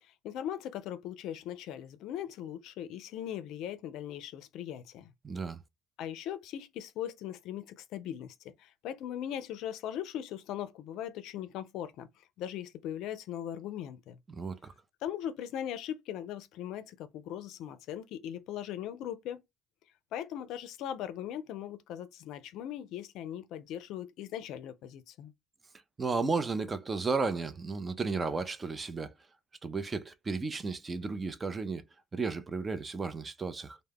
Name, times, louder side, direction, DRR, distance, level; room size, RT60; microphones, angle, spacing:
voice 1, 0.0-5.1 6.0-14.2 15.0-19.4 20.1-25.3, left 10 dB, 75° left, 0.4 m, -39 dB
voice 2, 5.2-5.6 14.3-14.7 26.0-29.1 29.6-31.8 32.1-33.8, right 4 dB, 30° right, 0.4 m, -33 dB
2.2 x 2.0 x 3.3 m
supercardioid pair, 80°, 0 cm